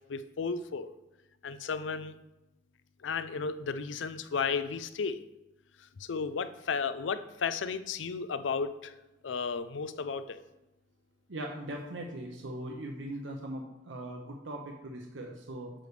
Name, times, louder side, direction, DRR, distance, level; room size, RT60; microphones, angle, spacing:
voice 1, 0.1-0.9 1.4-2.2 3.0-5.2 5.8-9.0 9.2-10.4, left 5 dB, 85° left, 12 dB, 0.5 m, -34 dB
voice 2, 11.3-15.7, right 1 dB, 90° right, 1 dB, 0.8 m, -40 dB
8.9 x 3.3 x 6.7 m, 0.98 s
head